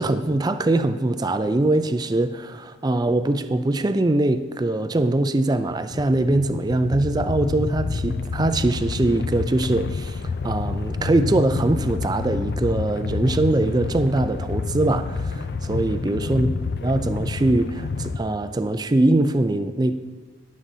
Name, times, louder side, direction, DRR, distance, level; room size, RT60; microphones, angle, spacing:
voice 1, 0.0-16.5 16.8-19.9, right 2 dB, 20° right, 10 dB, 0.4 m, -22 dB
sound 1, 5.9-18.2, left 4 dB, 55° left, 0.4 m, -28 dB
18.0 x 7.5 x 2.8 m, 1.4 s
head